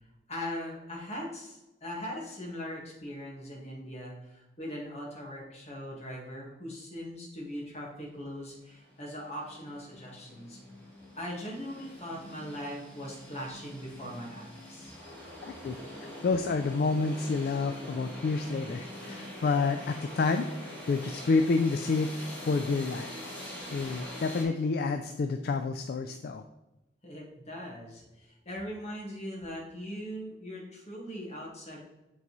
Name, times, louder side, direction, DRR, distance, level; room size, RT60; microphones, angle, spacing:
voice 1, 0.3-10.6 11.2-14.9 27.0-31.8, equal, 35° left, -2 dB, 1.7 m, -40 dB
sound 1, 8.5-8.6 8.8-24.4, equal, 10° left, 1.8 m, -44 dB
voice 2, 15.4-15.8 16.2-22.1 22.4-23.1 23.7-26.4, left 4 dB, 55° left, 7 dB, 0.3 m, -29 dB
8.2 x 4.0 x 3.0 m, 0.96 s
head